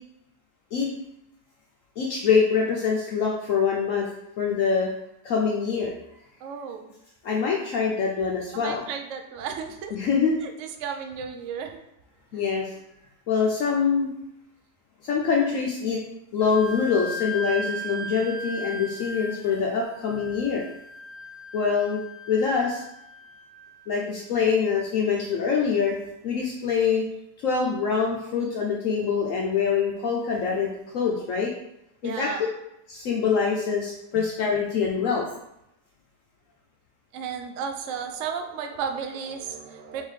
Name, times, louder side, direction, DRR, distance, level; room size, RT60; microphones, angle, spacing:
voice 1, 2.0-4.1 4.4-4.9 5.2-5.9 7.2-8.8 9.9-10.4 12.3-12.7 13.3-14.1 15.0-16.0 16.3-20.7 21.5-22.0 22.3-22.8 23.9-26.0 26.2-27.1 27.4-31.5 32.0-32.3 32.9-35.3, left 6 dB, 75° left, -1 dB, 0.7 m, -24 dB
voice 2, 6.4-6.8 8.5-10.0 10.4-11.8 32.0-32.4 34.2-34.3 37.1-40.0, right 6 dB, 80° right, 5 dB, 0.6 m, -33 dB
Wind instrument woodwind instrument, 16.4-23.8, equal, 40° right, 1.3 m, -37 dB
3.8 x 3.6 x 3.2 m, 0.84 s
omnidirectional pair, 1.8 m